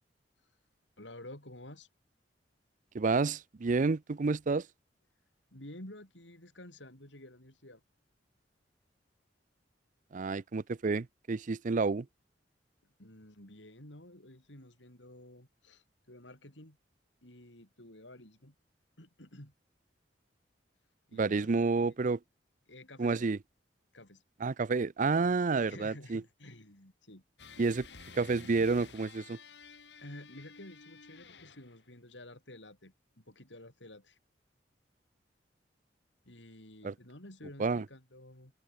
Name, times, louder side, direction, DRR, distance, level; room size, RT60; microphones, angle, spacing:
voice 1, 1.0-1.9 5.5-7.8 13.0-16.8 17.2-18.6 19.0-19.5 21.1-21.9 22.7-23.3 23.9-24.2 25.3-27.2 30.0-34.2 36.2-38.5, left 1 dB, 85° left, 7.9 m, -51 dB
voice 2, 2.9-4.7 10.1-12.1 21.1-22.2 23.0-23.4 24.4-26.2 27.6-27.9 28.1-29.4 36.8-36.9 37.6-37.8, right 4 dB, 45° right, 0.5 m, -29 dB
sound 1, 27.4-31.9, left 4 dB, 70° left, 3.6 m, -52 dB
head